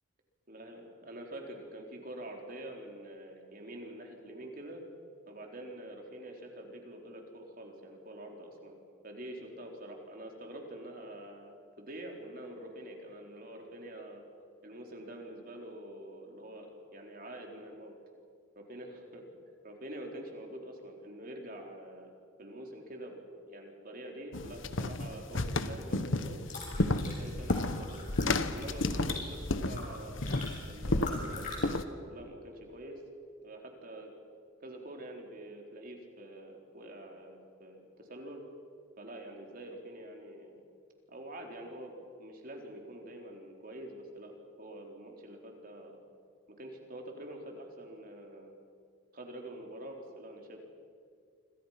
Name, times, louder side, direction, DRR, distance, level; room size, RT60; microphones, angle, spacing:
voice 1, 0.5-4.8 5.3-8.7 9.0-14.2 14.6-17.9 18.6-19.2 19.6-22.1 22.4-23.2 23.5-26.4 27.0-30.4 30.7-33.0 33.4-34.1 34.6-38.4 39.0-40.6 41.1-41.9 42.2-46.0 46.5-48.5 49.1-50.7, right 1 dB, 45° right, 1 dB, 4.0 m, -46 dB
sound 1, 24.3-31.8, left 2 dB, 65° left, 1.2 m, -32 dB
sound 2, 26.3-31.6, left 2 dB, 40° left, 7.1 m, -44 dB
27.5 x 26.5 x 5.9 m, 2.2 s
head